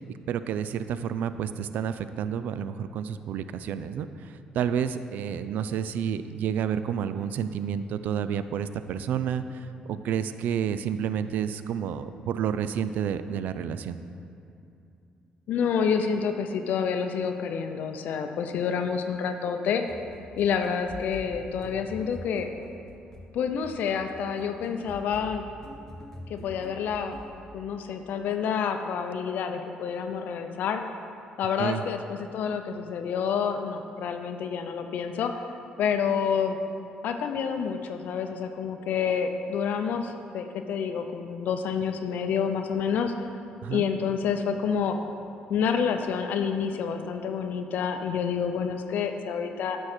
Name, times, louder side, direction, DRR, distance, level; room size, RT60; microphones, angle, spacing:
voice 1, 0.3-14.0 31.6-31.8 43.6-43.9, right 8 dB, 70° right, 12 dB, 0.3 m, -30 dB
voice 2, 15.5-19.8 20.4-22.5 23.3-25.4 26.3-27.2 27.5-30.8 31.4-35.4 35.8-36.6 37.0-43.1 43.7-45.0 45.5-49.8, left 7 dB, 70° left, 6 dB, 0.5 m, -28 dB
sound 1, 19.9-27.5, left 1 dB, 15° left, 1.3 m, -45 dB
9.5 x 6.3 x 4.4 m, 2.6 s
supercardioid pair, 75°, 3 cm